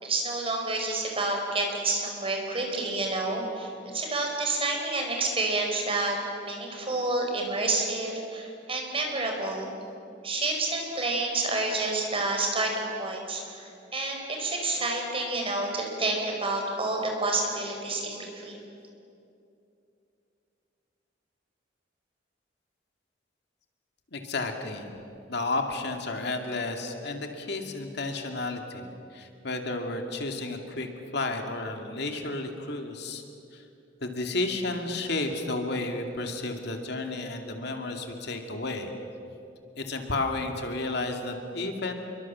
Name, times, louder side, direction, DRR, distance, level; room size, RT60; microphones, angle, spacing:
voice 1, 0.0-9.7 10.2-18.6, right 2 dB, 30° right, 1 dB, 4.8 m, -29 dB
voice 2, 24.1-24.9 25.3-28.9 29.1-30.9 31.1-33.2 33.5-33.6 34.0-38.9 39.8-41.9, left 2 dB, 60° left, 4 dB, 2.4 m, -32 dB
28.0 x 23.0 x 7.4 m, 2.7 s
head